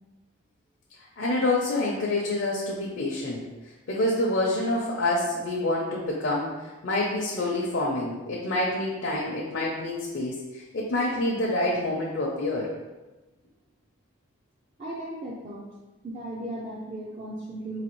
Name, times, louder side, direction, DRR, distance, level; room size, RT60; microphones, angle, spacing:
voice 1, 1.2-3.4 3.9-6.5 6.8-12.7, left 2 dB, 65° left, -3 dB, 0.6 m, -27 dB
voice 2, 14.8-15.7 16.0-17.8, right 1 dB, 30° right, -5 dB, 0.4 m, -36 dB
4.0 x 2.7 x 3.0 m, 1.1 s
head